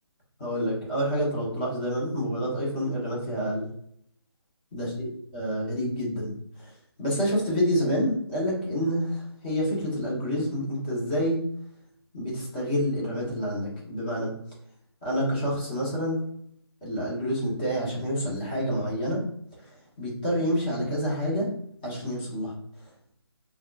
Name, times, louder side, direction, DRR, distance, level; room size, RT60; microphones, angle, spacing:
voice 1, 0.4-3.6 4.7-6.3 6.6-6.7 7.0-11.4 12.1-14.3 15.0-16.2 16.8-19.2 19.7-21.5 21.8-22.5, equal, 20° left, -5 dB, 1.1 m, -28 dB
5.3 x 2.3 x 2.5 m, 0.68 s
figure-of-eight pair, 165°, 14 cm